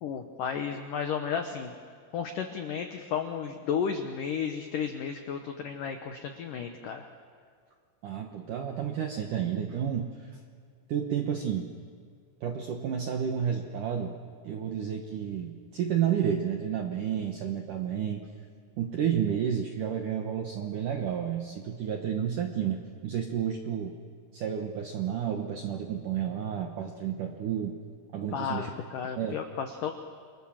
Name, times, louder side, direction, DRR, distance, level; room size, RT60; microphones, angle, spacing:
voice 1, 0.0-1.8 2.1-7.1 28.3-29.9, left 7 dB, 90° left, 6 dB, 1.8 m, -33 dB
voice 2, 8.0-10.4 10.9-11.7 12.4-14.2 14.4-18.3 18.8-24.0 24.3-27.8 28.1-28.7 29.2-29.4, right 8 dB, 75° right, 3 dB, 1.8 m, -31 dB
29.5 x 25.0 x 7.3 m, 2.1 s
omnidirectional pair, 5.6 m